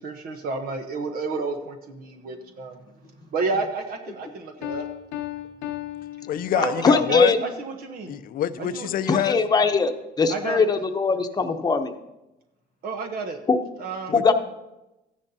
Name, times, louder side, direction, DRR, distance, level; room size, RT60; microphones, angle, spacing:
voice 1, 0.0-2.8 3.3-4.9 6.5-8.2 8.6-8.9 10.3-10.7 12.8-13.4 13.8-14.1, right 4 dB, 60° right, 1.0 m, -30 dB
Piano, 4.6-7.1, left 14 dB, 85° left, 0.9 m, -35 dB
voice 2, 6.3-7.3 8.1-9.4 14.1-14.2, left 11 dB, 55° left, 0.6 m, -25 dB
voice 3, 6.8-7.4 9.1-9.9 10.2-11.9 13.5-13.6 14.1-14.3, left 4 dB, 25° left, 0.9 m, -21 dB
14.0 x 10.5 x 2.8 m
cardioid pair, 110°, 17 cm